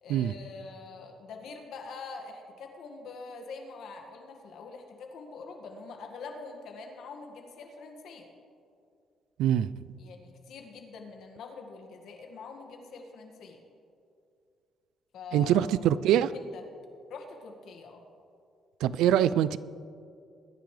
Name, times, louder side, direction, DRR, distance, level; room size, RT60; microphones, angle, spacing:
voice 1, 0.0-8.3 10.0-13.6 15.1-16.6 17.1-18.0, left 4 dB, 75° left, 3 dB, 1.8 m, -44 dB
voice 2, 9.4-9.7 15.3-16.3 18.8-19.6, right 10 dB, 90° right, 17 dB, 0.3 m, -24 dB
21.5 x 10.5 x 3.3 m, 2.4 s
cardioid pair, 90°, 0 cm